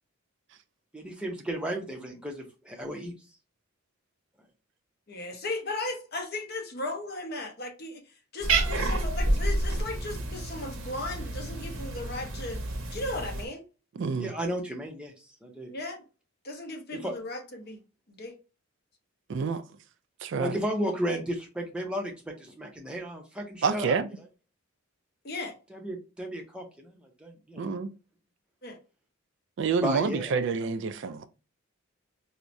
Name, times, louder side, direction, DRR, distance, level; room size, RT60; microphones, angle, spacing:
voice 1, 0.9-3.1 14.1-15.7 16.9-17.1 20.3-24.0 25.7-27.7 29.8-30.4, equal, 5° right, 0.6 m, -34 dB
voice 2, 5.1-8.0 8.3-12.6 12.9-13.6 15.7-16.0 16.4-17.8 18.1-18.4 25.2-25.5 28.6-28.8, left 2 dB, 45° left, 0.7 m, -36 dB
Cat, 8.4-13.5, right 2 dB, 75° right, 0.8 m, -29 dB
voice 3, 14.0-14.3 19.3-19.6 20.2-20.6 23.6-24.1 27.6-27.9 29.6-31.3, right 5 dB, 55° right, 0.3 m, -28 dB
4.5 x 2.1 x 2.6 m
head